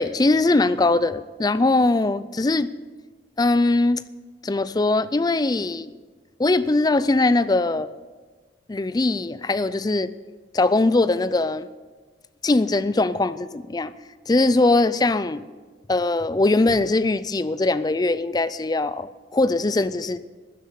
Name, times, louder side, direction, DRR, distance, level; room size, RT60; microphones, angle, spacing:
voice 1, 0.0-2.7 3.4-4.0 4.4-5.9 6.4-7.9 8.7-10.1 10.5-11.7 12.4-13.9 14.3-15.4 15.9-20.2, left 2 dB, 20° left, 15 dB, 0.4 m, -21 dB
13.0 x 10.0 x 6.9 m, 1.4 s
head